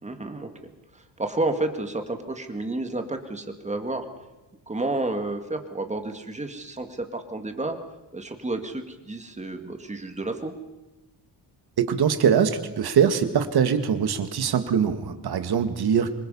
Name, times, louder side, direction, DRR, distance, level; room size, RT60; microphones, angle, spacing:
voice 1, 0.0-0.5 0.9-4.1 4.7-7.8 8.1-10.5, right 2 dB, 15° right, 6 dB, 2.0 m, -30 dB
voice 2, 11.8-16.1, right 7 dB, 60° right, 8 dB, 2.0 m, -22 dB
26.0 x 23.0 x 5.6 m, 1.1 s
wide cardioid pair, 160°, 43 cm